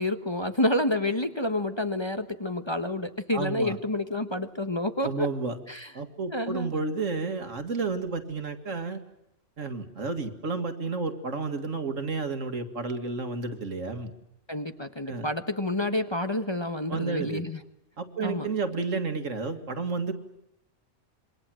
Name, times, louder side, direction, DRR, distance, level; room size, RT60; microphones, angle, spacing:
voice 1, 0.0-5.3 5.7-5.9 6.3-6.7 14.5-17.6 18.2-18.5, left 1 dB, 20° left, 8 dB, 1.2 m, -29 dB
voice 2, 3.3-3.8 5.0-5.6 5.9-9.0 9.6-14.1 15.1-15.3 16.9-17.4 18.0-20.1, right 4 dB, 80° right, 7 dB, 2.4 m, -31 dB
27.0 x 24.0 x 7.7 m, 0.82 s
omnidirectional pair, 1.3 m